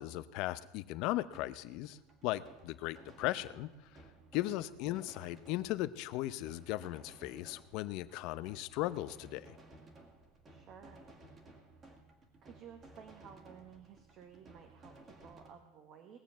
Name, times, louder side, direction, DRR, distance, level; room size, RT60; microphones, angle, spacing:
voice 1, 0.0-2.0 2.2-3.7 4.3-9.4, left 16 dB, 55° left, 14 dB, 0.7 m, -37 dB
sound 1, 1.3-15.5, right 2 dB, 25° right, 2.2 m, -58 dB
voice 2, 4.4-4.8 10.5-11.1 12.4-16.2, right 7 dB, 40° right, 6 dB, 1.3 m, -55 dB
19.0 x 7.0 x 7.3 m, 1.1 s
supercardioid pair, 140°, 0 cm